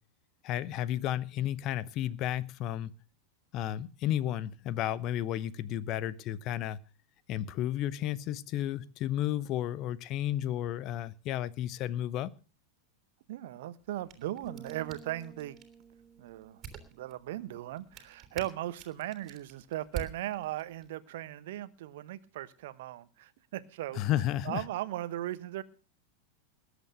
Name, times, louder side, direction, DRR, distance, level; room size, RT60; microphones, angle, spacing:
voice 1, 0.4-2.9 3.5-6.8 7.3-12.3 23.9-24.6, left 12 dB, 35° left, 0.8 m, -32 dB
voice 2, 13.3-15.6 16.2-16.6 16.9-24.0 24.4-25.6, right 14 dB, 55° right, 1.0 m, -38 dB
sound 1, 13.8-20.9, right 8 dB, 30° right, 3.3 m, -48 dB
sound 2, 14.5-18.2, right 5 dB, 5° right, 2.0 m, -54 dB
20.0 x 8.2 x 6.5 m
figure-of-eight pair, 90°, 0 cm